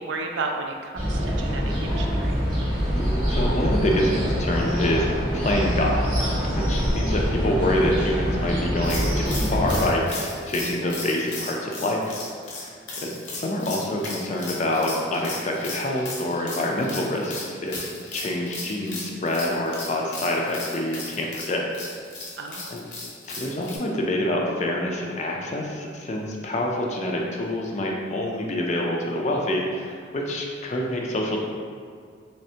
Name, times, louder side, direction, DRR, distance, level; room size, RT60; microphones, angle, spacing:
voice 1, 0.0-2.4 22.4-22.8, right 3 dB, 65° right, 3 dB, 0.4 m, -33 dB
sound 1, 1.0-9.9, equal, 25° right, 0.9 m, -24 dB
voice 2, 3.3-5.1 5.3-6.1 6.6-12.7 13.0-17.9 18.1-21.6 22.7-22.8 23.3-31.4, left 1 dB, 35° left, -1 dB, 0.4 m, -26 dB
sound 2, 8.8-23.8, left 3 dB, 65° left, 0.7 m, -36 dB
3.4 x 3.2 x 2.8 m, 2.1 s
head